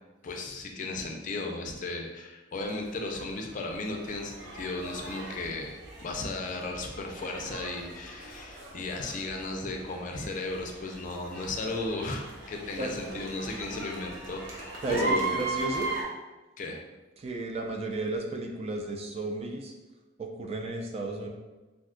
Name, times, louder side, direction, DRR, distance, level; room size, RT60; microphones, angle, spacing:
voice 1, 0.2-15.4 16.6-16.8, left 2 dB, 45° left, 2 dB, 0.4 m, -35 dB
sound 1, 2.6-16.0, right 2 dB, 75° right, 0.7 m, -38 dB
voice 2, 14.8-15.9 17.2-19.7 20.2-21.3, right 2 dB, 35° right, 1 dB, 0.3 m, -33 dB
2.6 x 2.3 x 3.7 m, 1.1 s
head